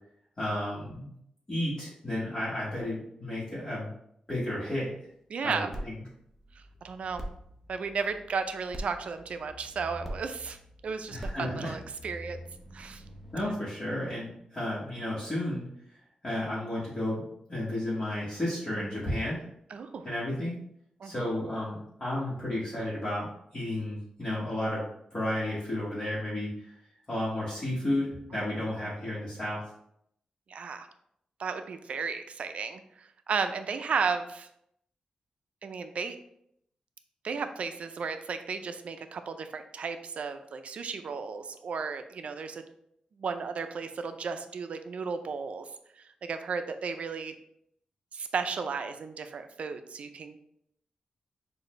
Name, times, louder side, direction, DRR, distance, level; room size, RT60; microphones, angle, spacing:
voice 1, 0.4-1.1 1.5-3.9 4.3-4.9 5.4-6.0 11.1-11.7 13.3-15.7 16.2-19.4 20.0-20.5 21.0-23.3 23.5-24.8 25.1-26.7 27.1-29.6, left 1 dB, 25° left, -9 dB, 1.3 m, -32 dB
voice 2, 5.3-5.7 6.8-7.2 7.7-10.6 10.8-12.4 12.7-13.0 19.7-20.1 21.0-21.3 28.3-28.4 28.8-28.9 30.5-30.9 31.4-32.8 33.3-34.5 35.6-36.2 37.2-42.6 43.2-45.7 46.3-47.3 48.1-50.4, right 5 dB, 60° right, 8 dB, 0.4 m, -34 dB
sound 1, 5.7-13.5, equal, ahead, 0.6 m, -44 dB
6.3 x 2.5 x 3.1 m, 0.72 s
wide cardioid pair, 170°, 2 cm